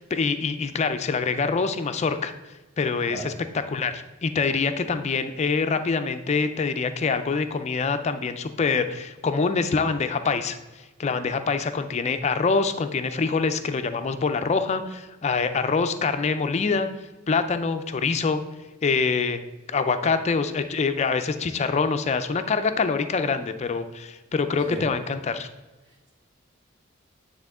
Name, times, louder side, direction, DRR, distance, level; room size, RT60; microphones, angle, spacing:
voice 1, 0.0-2.3 2.8-3.3 3.7-10.6 11.0-16.9 17.3-18.4 18.8-19.4 19.7-25.5, left 4 dB, 35° left, 9 dB, 0.4 m, -25 dB
voice 2, 24.6-24.9 25.8-26.1, right 2 dB, 60° right, -5 dB, 1.1 m, -36 dB
9.0 x 3.6 x 3.6 m, 1.2 s
head